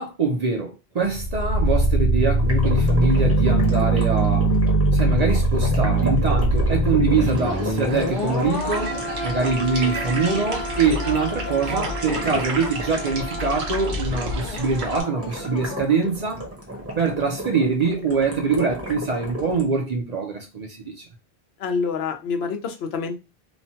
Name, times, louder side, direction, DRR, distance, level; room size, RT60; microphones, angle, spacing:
voice 1, 0.0-4.5 4.9-9.0 9.2-16.4 17.0-21.1, right 4 dB, 50° right, 0.5 m, -24 dB
sound 1, 1.0-16.0 16.3-16.4, right 1 dB, 45° left, 1.1 m, -23 dB
sound 2, 2.4-13.3 15.2-19.6, equal, 15° right, 0.7 m, -35 dB
sound 3, 7.1-15.0, right 1 dB, 85° right, 1.0 m, -31 dB
voice 2, 21.6-23.2, left 5 dB, 80° left, 0.9 m, -27 dB
3.0 x 2.1 x 2.7 m
omnidirectional pair, 1.0 m